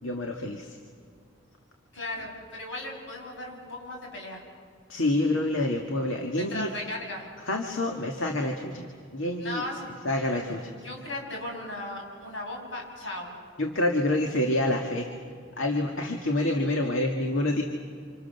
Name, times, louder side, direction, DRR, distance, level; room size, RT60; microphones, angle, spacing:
voice 1, 0.0-0.8 4.9-6.7 7.4-9.6 10.0-10.6 13.6-15.1 15.6-17.6, left 1 dB, 85° left, 2 dB, 2.0 m, -27 dB
voice 2, 1.9-4.4 6.4-7.3 9.4-10.4 10.8-13.4, left 1 dB, 70° left, 0 dB, 7.0 m, -37 dB
29.5 x 27.0 x 6.9 m, 2.2 s
head